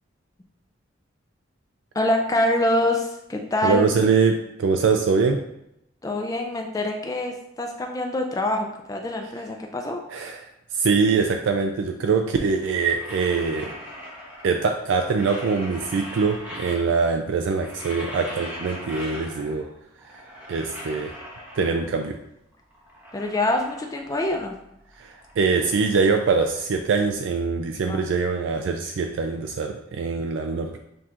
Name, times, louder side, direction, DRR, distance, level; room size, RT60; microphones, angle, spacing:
voice 1, 2.0-3.8 6.0-10.0 23.1-24.5 27.9-28.0, left 1 dB, 20° left, 2 dB, 0.3 m, -25 dB
voice 2, 3.6-5.4 10.1-10.4 10.7-13.7 14.4-19.6 20.5-21.1 21.6-22.2 25.0-30.8, right 5 dB, 75° right, 4 dB, 0.3 m, -23 dB
sound 1, 12.6-14.7 15.0-17.2 17.5-19.7 20.0-22.1 22.5-24.5 24.8-27.0, equal, 10° right, 0.9 m, -40 dB
7.5 x 2.8 x 2.5 m, 0.82 s
head